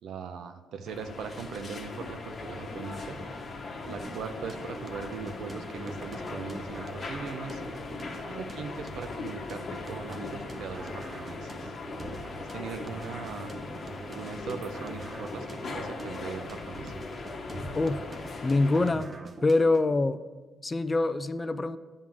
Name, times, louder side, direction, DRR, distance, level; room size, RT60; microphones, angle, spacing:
voice 1, 0.0-3.2 3.8-7.6 8.3-11.7 12.4-13.6 14.1-16.9, right 5 dB, 75° right, 8 dB, 0.7 m, -39 dB
sound 1, 0.9-18.9, left 3 dB, 40° left, 1.0 m, -39 dB
sound 2, 4.0-20.0, right 2 dB, 30° right, 0.7 m, -45 dB
voice 2, 18.4-19.1 19.4-20.2 20.6-21.8, left 2 dB, 25° left, 12 dB, 0.3 m, -25 dB
8.8 x 3.7 x 6.1 m, 1.3 s
cardioid pair, 90°, 0 cm